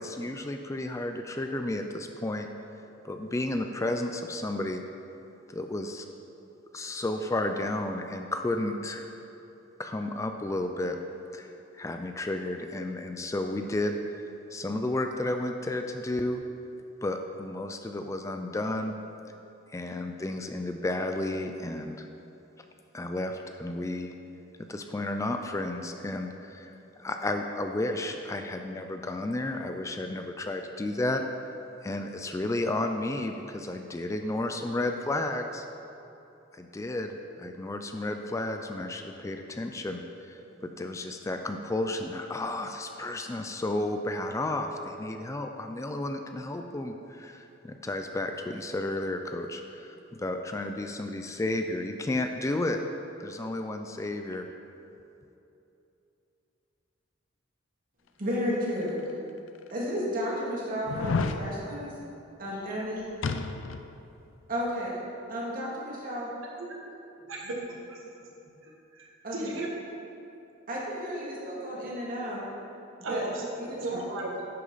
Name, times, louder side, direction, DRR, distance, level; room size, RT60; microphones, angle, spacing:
voice 1, 0.0-2.5 3.0-4.8 5.5-6.1 6.7-9.1 9.8-11.0 11.3-11.5 11.8-14.0 14.5-16.4 17.0-19.0 19.7-22.1 22.9-24.1 24.7-31.2 31.8-35.6 36.5-40.0 40.3-40.4 40.8-52.8 53.2-54.5, left 2 dB, 15° left, 5 dB, 0.3 m, -32 dB
voice 2, 58.2-59.0 59.7-61.9 62.4-63.1 64.5-65.0 65.3-66.3 69.2-69.6 70.7-72.4 73.1-73.2 73.6-74.0, equal, 45° right, -6 dB, 2.1 m, -32 dB
sound 1, 58.9-59.0 59.7-59.8 60.9-61.4 63.2-63.9 64.2-64.3, left 4 dB, 75° left, 0.4 m, -30 dB
voice 3, 68.6-69.7 73.0-73.4 73.8-74.4, right 2 dB, 85° right, -2 dB, 1.4 m, -35 dB
10.5 x 6.4 x 4.0 m, 2.8 s
head